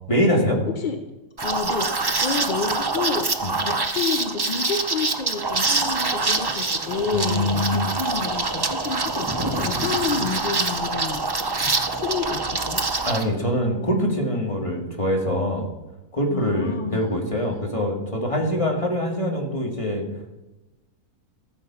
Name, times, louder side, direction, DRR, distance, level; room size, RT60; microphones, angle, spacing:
voice 1, 0.1-0.6 3.4-3.5 7.1-7.9 13.0-15.7 16.1-20.0, equal, 20° left, 0 dB, 1.9 m, -24 dB
voice 2, 1.4-11.2 11.6-13.0 16.3-17.0, left 5 dB, 50° left, 6 dB, 0.6 m, -29 dB
Liquid, 1.4-13.2, right 3 dB, 35° right, 0.4 m, -25 dB
sound 1, 5.6-10.3, equal, 15° right, 1.2 m, -36 dB
15.0 x 7.2 x 5.6 m, 1.1 s
omnidirectional pair, 1.6 m